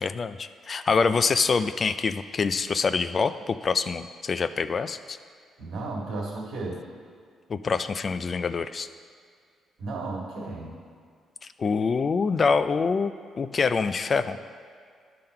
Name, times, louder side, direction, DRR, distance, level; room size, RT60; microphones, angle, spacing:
voice 1, 0.0-5.2 7.5-8.9 11.6-13.1 13.4-14.4, left 5 dB, 40° left, 12 dB, 0.3 m, -25 dB
voice 2, 5.6-6.8 9.8-10.8, right 3 dB, 80° right, -2 dB, 1.9 m, -34 dB
10.5 x 3.8 x 5.5 m, 2.1 s
cardioid pair, 90°, 0 cm